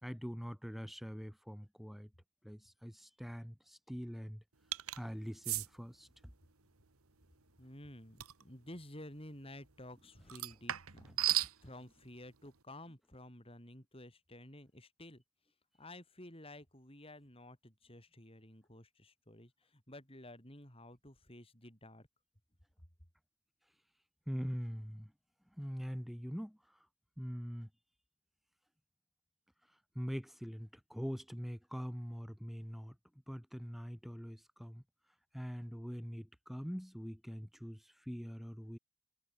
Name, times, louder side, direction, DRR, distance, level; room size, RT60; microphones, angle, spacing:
voice 1, 0.0-2.1 2.4-4.4 4.9-6.3 11.3-11.5 24.3-25.1 25.5-26.9 27.2-27.7 29.7-33.0 33.3-34.8 35.3-38.8, equal, ahead, 5.5 m, -43 dB
sound 1, 4.7-5.0 5.4-5.7 8.2-8.4 10.3-11.5, right 14 dB, 85° right, 1.7 m, -34 dB
voice 2, 7.6-15.2 15.8-22.1, left 1 dB, 25° left, 6.4 m, -53 dB
head